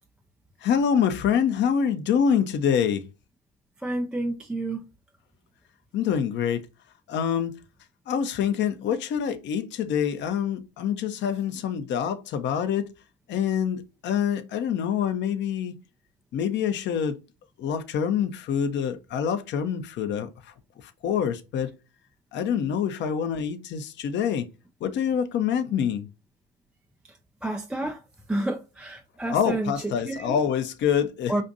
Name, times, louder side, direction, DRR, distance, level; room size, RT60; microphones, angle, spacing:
voice 1, 0.6-3.1 5.9-6.7 7.1-7.6 8.1-12.8 13.3-15.7 16.3-17.2 17.6-21.7 22.3-24.5 24.8-26.1 29.3-31.4, left 8 dB, 35° left, 0.7 m, -26 dB
voice 2, 3.8-4.8 27.4-28.0 28.3-29.7 30.1-30.4 31.3-31.4, right 1 dB, 5° right, 0.3 m, -29 dB
5.2 x 2.5 x 2.5 m
hypercardioid pair, 85°, 32 cm